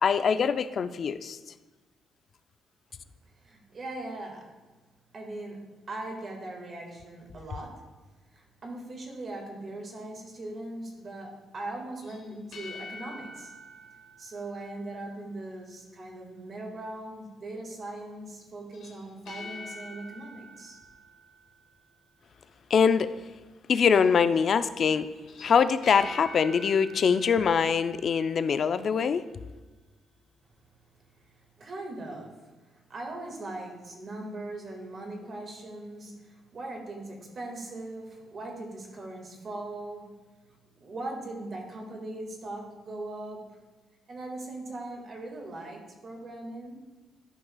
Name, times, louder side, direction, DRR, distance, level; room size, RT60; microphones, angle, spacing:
voice 1, 0.0-1.4 22.7-23.1 23.7-25.1 25.4-29.2, left 6 dB, 55° left, 12 dB, 0.4 m, -23 dB
voice 2, 3.4-4.5 5.1-7.8 8.3-13.5 14.2-20.8 31.6-32.3 32.9-40.1 40.8-43.5 44.1-46.8, right 2 dB, 45° right, 1 dB, 1.7 m, -40 dB
sound 1, 12.0-15.4 18.7-22.0 25.2-28.7, left 2 dB, 80° left, 1.2 m, -46 dB
12.5 x 5.5 x 2.3 m, 1.2 s
cardioid pair, 90°, 0 cm